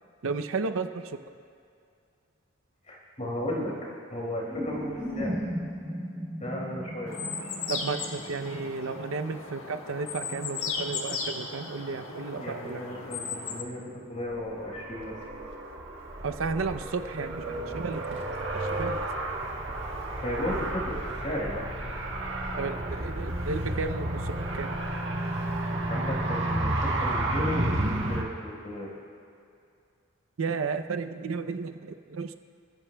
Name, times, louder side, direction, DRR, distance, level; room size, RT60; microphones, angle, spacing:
voice 1, 0.2-1.2 7.7-12.8 16.2-18.2 18.8-19.1 22.6-24.7 30.4-32.3, right 4 dB, 80° right, 9 dB, 0.6 m, -33 dB
voice 2, 2.9-3.7 4.1-5.4 6.4-7.1 12.4-15.2 20.2-21.7 25.9-28.9, left 1 dB, 35° left, -3 dB, 4.5 m, -34 dB
sound 1, 4.5-9.1, equal, 15° left, 2.2 m, -36 dB
sound 2, 7.1-13.6, left 5 dB, 80° left, 1.4 m, -36 dB
Car, 14.3-28.2, right 1 dB, 60° right, 1.6 m, -31 dB
29.0 x 15.0 x 2.3 m, 2.4 s
head